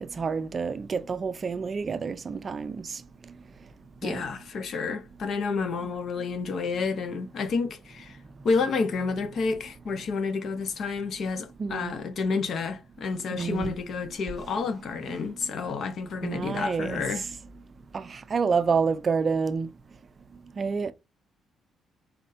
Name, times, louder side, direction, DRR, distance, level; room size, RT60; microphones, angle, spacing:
voice 1, 0.0-3.0 4.0-4.2 5.8-5.9 11.6-11.9 13.3-13.8 15.1-15.2 16.2-17.0 17.9-19.7 20.6-20.9, right 5 dB, 35° right, 0.4 m, -28 dB
voice 2, 4.0-8.2 8.4-17.2, left 4 dB, 55° left, 0.7 m, -30 dB
4.2 x 4.0 x 2.5 m
cardioid pair, 130°, 0 cm